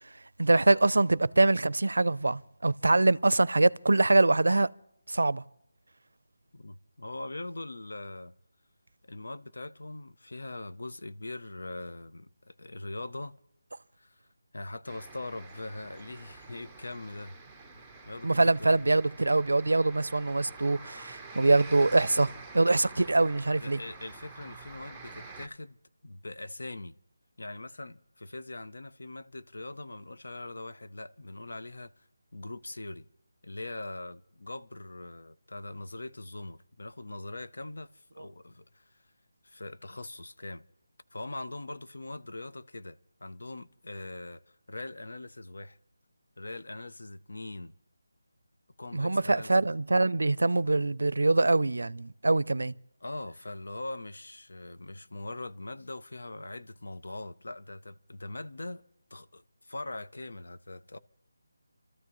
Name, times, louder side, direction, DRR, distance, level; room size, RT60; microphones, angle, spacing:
voice 1, 0.4-4.7 5.1-5.4 18.2-23.8 48.9-52.7, right 2 dB, 90° right, 0.5 m, -24 dB
voice 2, 6.5-8.3 9.0-13.3 14.0-14.3 14.5-17.4 17.7-18.8 23.6-25.8 26.0-27.0 27.4-32.1 32.3-33.1 33.4-39.0 39.4-40.6 41.1-45.8 46.4-47.7 48.8-49.5 53.0-58.8 59.1-61.0, left 2 dB, 75° left, 0.7 m, -42 dB
sound 1, 14.9-25.5, right 4 dB, ahead, 0.6 m, -48 dB
29.5 x 13.5 x 3.1 m
figure-of-eight pair, 175°, 0 cm